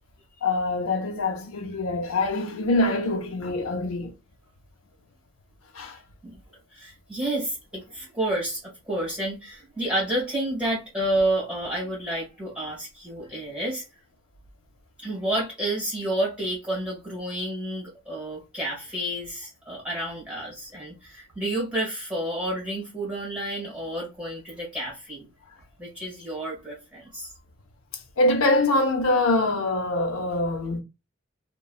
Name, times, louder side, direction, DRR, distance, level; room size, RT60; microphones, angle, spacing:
voice 1, 0.4-4.1 5.7-6.0 28.2-30.8, left 2 dB, 85° left, 0.7 m, -24 dB
voice 2, 6.7-13.8 15.0-25.2 25.8-27.3, right 1 dB, 5° right, 1.6 m, -30 dB
3.1 x 2.2 x 2.3 m
head